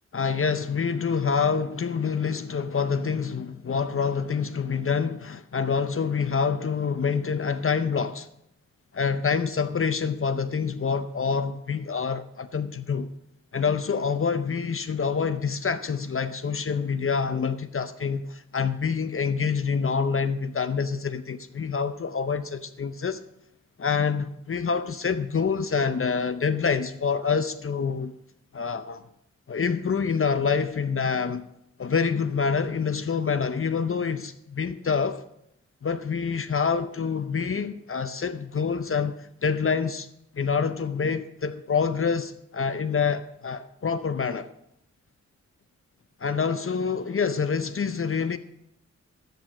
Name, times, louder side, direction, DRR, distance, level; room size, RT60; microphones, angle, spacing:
voice 1, 0.1-8.3 8.9-13.1 13.5-23.2 23.8-28.1 28.5-29.0 29.5-31.5 31.8-35.2 35.8-40.1 40.3-44.5 46.2-48.4, left 5 dB, 45° left, 0.6 m, -26 dB
11.0 x 9.2 x 6.0 m
wide cardioid pair, 70°, 29 cm